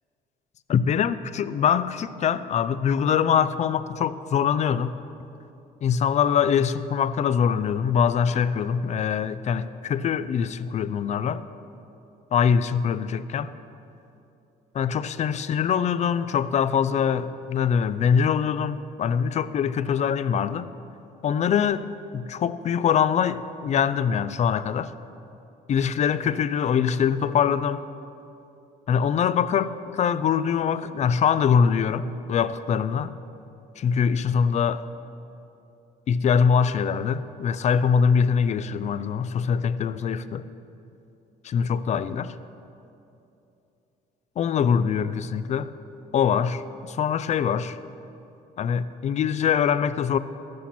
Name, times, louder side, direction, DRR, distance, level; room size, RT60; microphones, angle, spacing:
voice 1, 0.7-4.9 5.8-11.4 12.3-13.5 14.7-20.7 21.2-24.9 25.7-27.8 28.9-33.1 33.8-34.8 36.1-40.4 41.4-42.3 44.4-45.7 46.1-46.6 46.9-47.8 48.6-50.2, left 7 dB, 40° left, 15 dB, 0.5 m, -23 dB
13.0 x 13.0 x 4.3 m, 2.8 s
cardioid pair, 110°, 17 cm